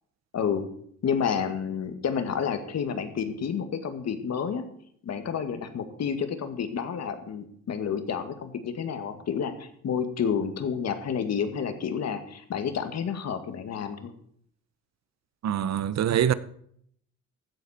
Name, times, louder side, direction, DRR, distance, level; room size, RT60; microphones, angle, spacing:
voice 1, 0.3-0.6 1.0-4.7 5.0-14.1, left 7 dB, 60° left, 2.0 m, -30 dB
voice 2, 15.4-16.3, right 10 dB, 60° right, 0.9 m, -24 dB
15.5 x 12.0 x 4.4 m
cardioid pair, 90°, 30 cm